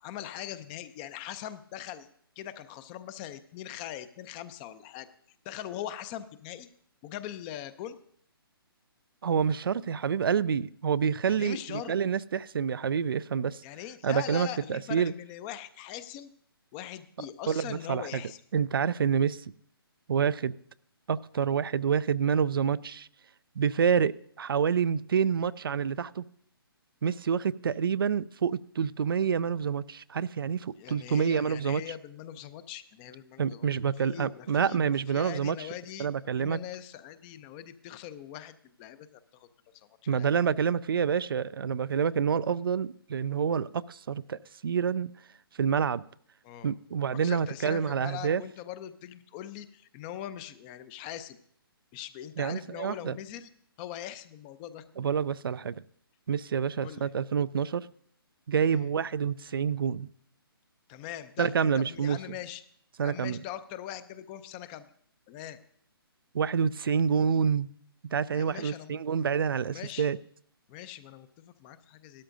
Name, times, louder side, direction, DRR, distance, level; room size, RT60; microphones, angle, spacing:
voice 1, 0.0-2.1 2.4-5.1 5.4-6.7 7.0-8.0 11.3-11.9 13.6-16.3 16.7-18.4 30.8-33.7 34.0-36.1 36.4-39.1 39.3-39.5 39.7-40.3 46.4-46.7 47.2-51.4 51.9-53.5 53.8-54.8 56.8-57.1 58.6-58.9 60.9-62.6 63.0-64.8 65.3-65.6 68.3-69.0 69.7-70.1 70.7-72.2, left 11 dB, 20° left, 14 dB, 0.5 m, -41 dB
voice 2, 9.2-13.6 14.0-15.1 17.5-18.2 18.5-19.5 20.1-20.5 21.1-23.1 23.6-26.2 27.0-31.8 33.4-35.7 36.0-36.6 40.1-45.1 45.6-46.0 46.6-48.4 52.4-53.2 55.0-55.8 56.3-57.9 58.5-60.1 61.4-62.2 63.0-63.4 66.3-67.7 68.1-70.2, right 7 dB, 65° right, 17 dB, 0.4 m, -28 dB
16.5 x 12.5 x 2.6 m, 0.64 s
figure-of-eight pair, 140°, 13 cm